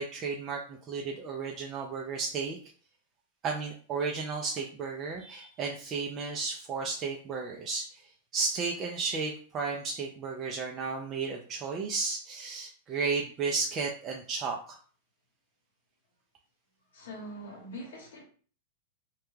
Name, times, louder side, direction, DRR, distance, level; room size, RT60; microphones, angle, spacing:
voice 1, 0.0-2.6 3.4-14.8, right 4 dB, 30° right, 0 dB, 0.4 m, -33 dB
voice 2, 16.9-18.2, equal, 85° left, 0 dB, 0.9 m, -43 dB
2.2 x 2.2 x 3.1 m, 0.43 s
hypercardioid pair, 130°, 0 cm